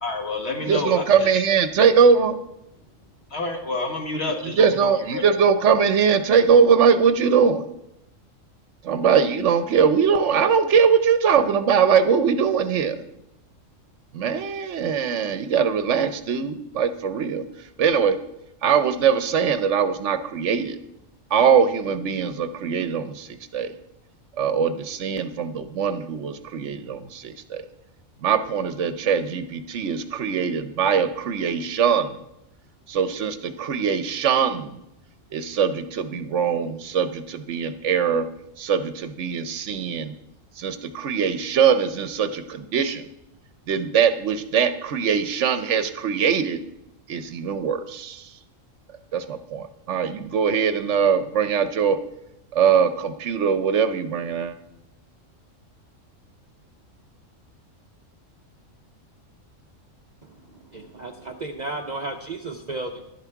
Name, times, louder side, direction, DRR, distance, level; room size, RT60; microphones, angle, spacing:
voice 1, 0.0-1.5 3.3-5.2, left 2 dB, 55° left, 2 dB, 1.9 m, -29 dB
voice 2, 0.6-2.4 4.4-7.7 8.8-13.0 14.1-17.4 17.8-18.2 18.6-20.8 21.3-23.7 24.4-27.6 28.2-32.1 32.9-34.8 35.3-38.3 38.6-40.1 40.6-43.0 43.7-46.6 47.1-48.3 49.1-52.0 52.5-54.5, right 6 dB, 65° right, 11 dB, 1.0 m, -21 dB
voice 3, 60.7-63.0, right 2 dB, 45° right, 4 dB, 0.7 m, -33 dB
11.5 x 10.5 x 4.6 m, 0.84 s
omnidirectional pair, 1.4 m